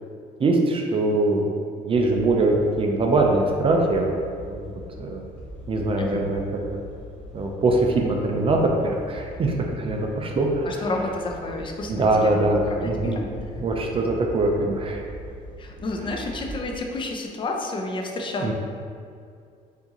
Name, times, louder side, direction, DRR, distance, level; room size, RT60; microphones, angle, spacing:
voice 1, 0.4-1.5 1.8-4.7 5.0-5.2 5.7-6.4 6.7-6.8 7.3-10.8 11.9-13.3 13.6-15.1 18.4-18.5, right 2 dB, 35° right, 1 dB, 0.4 m, -22 dB
sound 1, 1.9-16.8, equal, 5° left, 1.3 m, -41 dB
voice 2, 10.6-13.3 15.6-18.5, left 2 dB, 30° left, 2 dB, 0.5 m, -30 dB
4.6 x 2.6 x 2.9 m, 2.3 s
cardioid pair, 110°, 17 cm